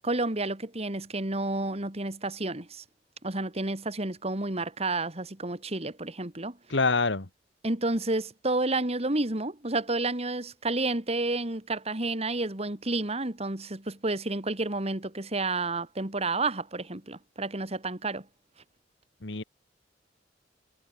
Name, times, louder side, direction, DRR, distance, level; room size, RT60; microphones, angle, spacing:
voice 1, 0.0-2.8 3.2-6.6 7.6-18.2, right 2 dB, 35° right, 2.6 m, -30 dB
voice 2, 6.7-7.3 19.2-19.4, left 3 dB, 85° left, 1.8 m, -26 dB
head